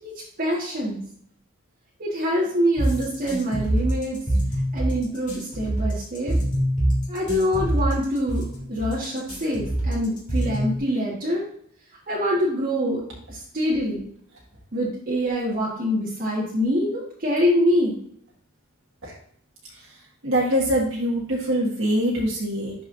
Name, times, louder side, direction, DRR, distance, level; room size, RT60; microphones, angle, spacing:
voice 1, 0.0-1.0 2.0-4.2 4.7-6.4 7.1-11.5 12.1-13.0 13.3-14.1 14.7-18.0, equal, 45° right, -6 dB, 1.6 m, -25 dB
sound 1, 2.8-10.8, right 1 dB, 40° left, 2.7 m, -24 dB
voice 2, 20.2-22.7, equal, 65° right, -4 dB, 1.8 m, -23 dB
11.5 x 4.8 x 2.6 m, 0.63 s
head